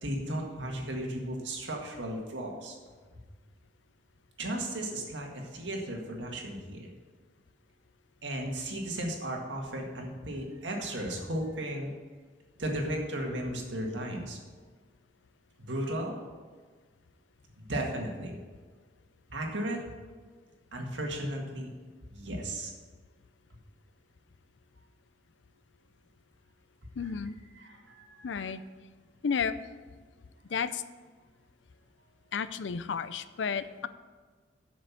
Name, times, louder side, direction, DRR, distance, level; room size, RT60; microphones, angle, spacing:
voice 1, 0.0-2.8 4.4-6.9 8.2-11.9 12.6-14.4 15.6-16.2 17.6-18.4 19.3-19.8 20.7-21.7 22.1-22.7 27.5-28.5, right 1 dB, 80° right, 1 dB, 1.9 m, -35 dB
voice 2, 27.0-27.4 28.2-28.6 29.2-29.6 30.5-30.8 32.3-33.9, left 6 dB, 90° left, 14 dB, 0.5 m, -32 dB
7.7 x 6.7 x 7.1 m, 1.5 s
head